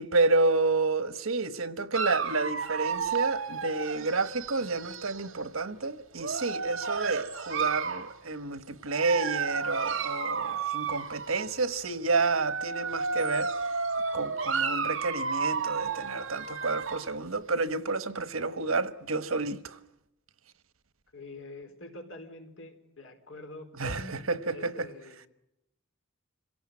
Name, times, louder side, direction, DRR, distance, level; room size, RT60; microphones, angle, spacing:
voice 1, 0.0-13.5 14.1-19.8 23.8-24.9, right 3 dB, 90° right, 1.2 m, -30 dB
Dog, 1.9-5.3 6.2-8.1 8.9-11.5 12.2-17.1, right 5 dB, 65° right, 2.3 m, -32 dB
voice 2, 21.1-24.2 24.5-25.3, left 2 dB, 70° left, 4.3 m, -45 dB
27.0 x 17.0 x 9.6 m
head